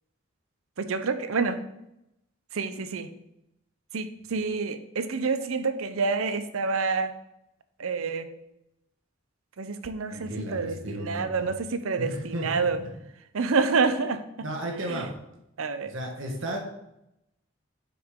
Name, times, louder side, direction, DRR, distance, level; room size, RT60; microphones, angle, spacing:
voice 1, 0.8-1.6 2.5-3.1 3.9-7.1 7.8-8.3 9.6-12.8 13.3-14.2 14.9-15.1 15.6-15.9, right 4 dB, 85° right, 11 dB, 0.6 m, -28 dB
voice 2, 10.1-11.5 12.0-12.9 14.4-15.1 15.8-16.6, right 1 dB, 65° right, 0 dB, 1.3 m, -34 dB
7.5 x 5.9 x 3.7 m, 0.85 s
head